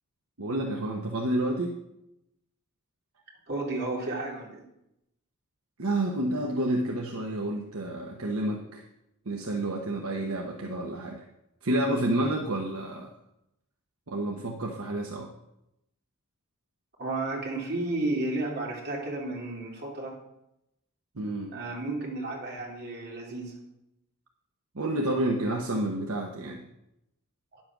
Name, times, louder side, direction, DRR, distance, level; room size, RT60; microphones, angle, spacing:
voice 1, 0.4-1.8 5.8-8.8 9.3-11.2 11.6-13.1 14.1-15.3 21.2-21.5 24.7-26.6, right 1 dB, 70° right, 0 dB, 1.1 m, -29 dB
voice 2, 3.5-4.6 17.0-20.2 21.5-23.5 27.5-27.6, right 2 dB, 50° right, -2 dB, 3.1 m, -32 dB
10.5 x 7.6 x 6.0 m, 0.85 s
head